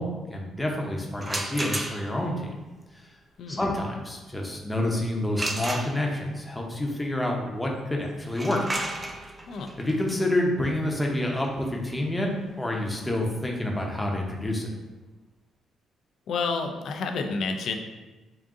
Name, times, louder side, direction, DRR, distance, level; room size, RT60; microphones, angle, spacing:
voice 1, 0.0-2.6 2.9-3.0 3.5-8.6 9.8-12.3 12.6-14.7, left 1 dB, 10° left, 0 dB, 0.7 m, -28 dB
sound 1, 1.2-2.3 5.4-6.4 8.2-13.9, right 1 dB, 20° right, 0.4 m, -35 dB
voice 2, 16.3-17.7, left 4 dB, 65° left, 4 dB, 0.4 m, -29 dB
3.7 x 2.5 x 3.7 m, 1.2 s
cardioid pair, 90°, 0 cm